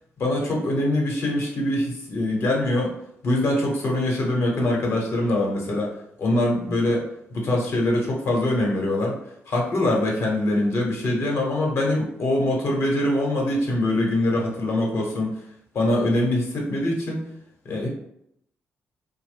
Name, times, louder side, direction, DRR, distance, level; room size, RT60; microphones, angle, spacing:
voice 1, 0.2-2.9 3.2-5.9 6.2-9.2 9.5-15.3 15.7-17.2 17.6-17.9, left 1 dB, 65° left, -1 dB, 0.9 m, -23 dB
2.8 x 2.1 x 3.3 m, 0.75 s
cardioid pair, 90°, 5 cm